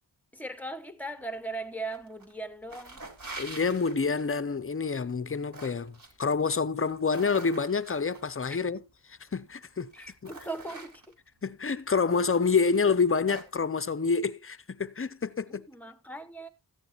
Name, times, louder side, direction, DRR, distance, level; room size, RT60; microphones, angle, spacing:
voice 1, 0.3-3.0 9.9-11.2 15.5-16.5, right 2 dB, 5° left, 1.1 m, -39 dB
sound 1, 1.9-2.3 2.6-4.4 5.1-6.1 6.7-8.3 9.3-9.4 9.9-11.3 12.1-12.2 12.7-13.6, right 3 dB, 50° right, 3.4 m, -45 dB
voice 2, 3.4-8.8 9.3-9.9 10.2-10.3 11.4-15.7, left 5 dB, 30° left, 0.6 m, -27 dB
14.0 x 9.5 x 3.1 m
wide cardioid pair, 120°, 42 cm